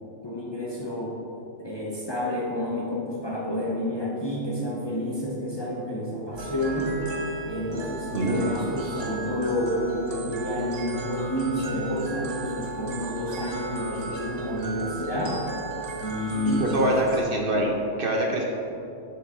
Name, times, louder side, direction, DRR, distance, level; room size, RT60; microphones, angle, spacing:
voice 1, 0.2-1.2 1.6-7.0 7.4-15.4 16.0-17.0, left 1 dB, 25° left, -3 dB, 0.7 m, -29 dB
sound 1, 6.3-17.2, right 4 dB, 85° right, 1.4 m, -36 dB
voice 2, 16.3-17.7 18.0-18.5, right 1 dB, 55° right, 0 dB, 0.9 m, -24 dB
7.1 x 6.2 x 3.7 m, 2.7 s
omnidirectional pair, 1.2 m